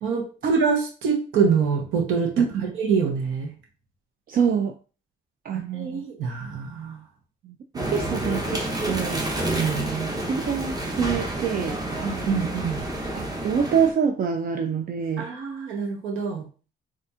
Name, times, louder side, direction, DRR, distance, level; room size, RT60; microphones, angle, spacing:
voice 1, 0.0-2.3 2.7-3.5 5.5-7.0 9.4-10.2 12.0-12.8 15.2-16.4, right 5 dB, 85° right, 1 dB, 0.9 m, -25 dB
voice 2, 4.3-4.7 5.4-6.0 7.4-9.3 10.3-11.8 13.1-15.3, right 7 dB, 45° right, 5 dB, 0.4 m, -25 dB
sound 1, 7.7-13.9, right 1 dB, 20° right, 0.8 m, -29 dB
4.0 x 2.5 x 2.4 m, 0.36 s
cardioid pair, 90°, 20 cm